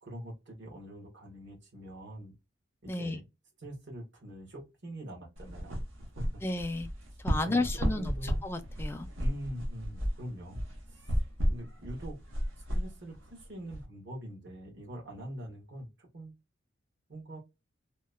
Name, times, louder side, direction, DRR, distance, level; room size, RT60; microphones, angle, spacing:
voice 1, 0.0-2.3 2.8-3.2 3.6-5.8 6.1-6.3 7.4-7.7 7.9-8.4 9.2-10.6 10.9-11.2 11.5-12.2 12.7-16.3 17.1-17.4, right 1 dB, 65° right, 1.2 m, -43 dB
voice 2, 2.9-3.2 6.4-6.9 7.2-9.1, left 2 dB, 10° left, 0.3 m, -32 dB
sound 1, 5.4-13.8, equal, 90° right, 0.8 m, -34 dB
3.0 x 2.1 x 2.2 m
head